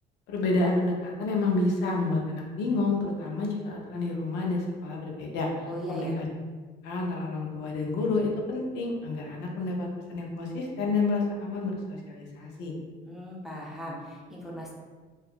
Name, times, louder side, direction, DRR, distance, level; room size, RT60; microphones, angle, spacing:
voice 1, 0.3-6.3 6.8-12.7, left 3 dB, 90° left, -1 dB, 0.5 m, -29 dB
voice 2, 5.6-6.2 13.1-14.7, equal, ahead, -4 dB, 0.6 m, -38 dB
2.7 x 2.3 x 2.4 m, 1.4 s
cardioid pair, 110°, 17 cm